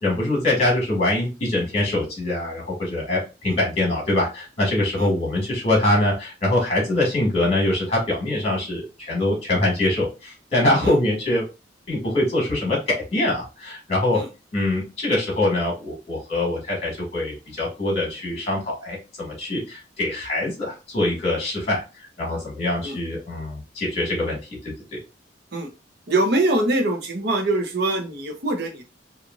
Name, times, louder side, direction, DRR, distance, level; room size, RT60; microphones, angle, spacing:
voice 1, 0.0-11.4 11.9-14.2 14.5-21.8 22.2-24.4 24.6-25.0, left 1 dB, 35° left, -2 dB, 1.4 m, -23 dB
voice 2, 26.1-28.8, right 2 dB, 60° right, 3 dB, 0.8 m, -23 dB
3.0 x 2.4 x 2.4 m, 0.29 s
head